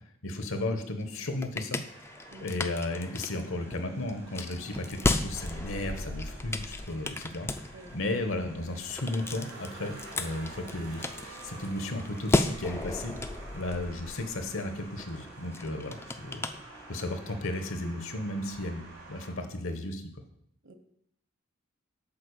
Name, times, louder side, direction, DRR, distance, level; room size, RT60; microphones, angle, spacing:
voice 1, 0.2-1.8 2.4-7.5 7.9-13.1 13.5-18.8 19.1-20.0, left 2 dB, 70° left, 7 dB, 1.1 m, -34 dB
sound 1, 1.0-17.2, left 2 dB, 10° left, 0.3 m, -35 dB
sound 2, 1.8-19.3, right 2 dB, 90° right, 2.8 m, -49 dB
voice 2, 2.3-2.5 7.7-7.9 20.6-20.7, right 2 dB, 65° right, 7 dB, 1.0 m, -49 dB
7.5 x 4.5 x 6.6 m, 0.72 s
head